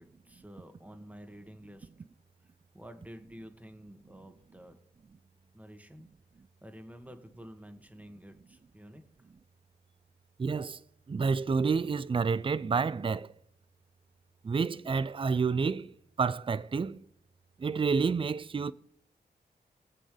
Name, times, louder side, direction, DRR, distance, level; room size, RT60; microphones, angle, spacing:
voice 1, 0.0-2.1 2.4-2.5 2.7-4.8 5.5-6.1 6.6-9.0, equal, 10° right, 1.6 m, -50 dB
voice 2, 10.4-10.8 11.1-13.3 14.4-15.9 16.2-17.0 17.6-18.7, right 5 dB, 30° right, 0.4 m, -29 dB
21.5 x 7.7 x 3.3 m
cardioid pair, 75°, 18 cm